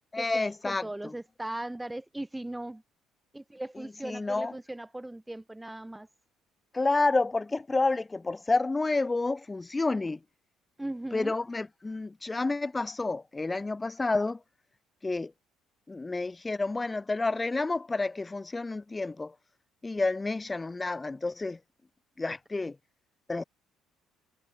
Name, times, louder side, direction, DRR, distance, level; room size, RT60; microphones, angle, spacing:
voice 1, 0.1-1.1 3.7-4.5 6.7-10.2 11.1-14.4 15.0-15.3 15.9-19.4 19.8-21.6 22.2-22.8 23.3-23.4, left 3 dB, 15° left, 1.2 m, -30 dB
voice 2, 0.6-2.8 3.3-6.1 10.8-11.3, right 1 dB, 5° right, 1.4 m, -38 dB
cardioid pair, 140°, 0 cm